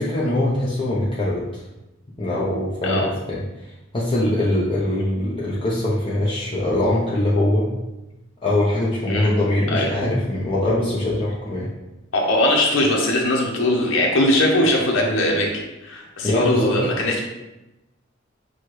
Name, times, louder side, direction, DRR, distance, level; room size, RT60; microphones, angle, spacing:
voice 1, 0.0-1.5 2.2-3.4 3.9-7.7 8.4-11.7 16.2-16.8, left 1 dB, 30° left, -7 dB, 0.6 m, -22 dB
voice 2, 12.1-17.2, left 1 dB, 85° left, -1 dB, 0.8 m, -20 dB
6.3 x 2.2 x 3.1 m, 0.98 s
head